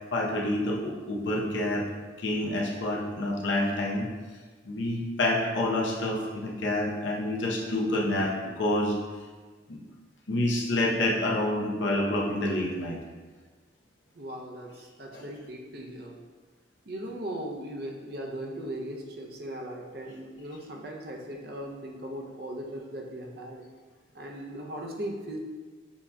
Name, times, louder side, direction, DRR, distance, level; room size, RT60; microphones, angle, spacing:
voice 1, 0.1-1.9 2.2-4.1 4.7-8.9 9.7-9.8 10.3-13.0 15.1-15.2, left 1 dB, 90° left, -2 dB, 0.7 m, -28 dB
voice 2, 14.1-16.2 16.9-23.6 24.1-25.4, right 1 dB, 55° right, 0 dB, 0.6 m, -38 dB
7.0 x 2.8 x 2.2 m, 1.4 s
head